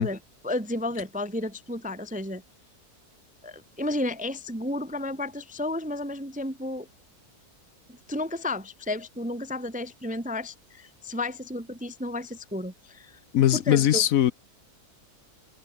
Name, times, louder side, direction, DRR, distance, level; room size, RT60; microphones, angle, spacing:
voice 1, 0.0-2.4 3.4-6.9 7.9-13.2 13.5-14.0, left 1 dB, 10° right, 0.6 m, -32 dB
voice 2, 13.3-14.3, left 11 dB, 65° left, 1.1 m, -20 dB
omnidirectional pair, 1.6 m